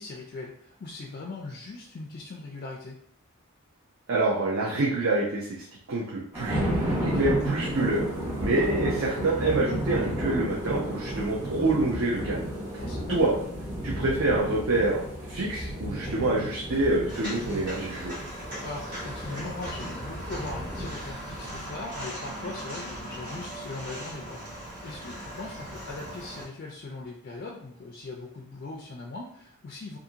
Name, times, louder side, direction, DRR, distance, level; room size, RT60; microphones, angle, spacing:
voice 1, 0.0-3.0 7.0-7.3 12.7-13.3 18.6-30.0, left 3 dB, 45° left, 0 dB, 0.3 m, -40 dB
voice 2, 4.1-6.6 7.0-8.1 8.4-12.8 13.1-13.3 13.8-18.1, right 2 dB, 65° right, -4 dB, 0.5 m, -26 dB
sound 1, 6.3-21.6, right 1 dB, 20° right, 1.1 m, -33 dB
Walk footsteps, 17.1-26.4, equal, 40° right, 1.0 m, -39 dB
2.5 x 2.5 x 2.7 m, 0.66 s
head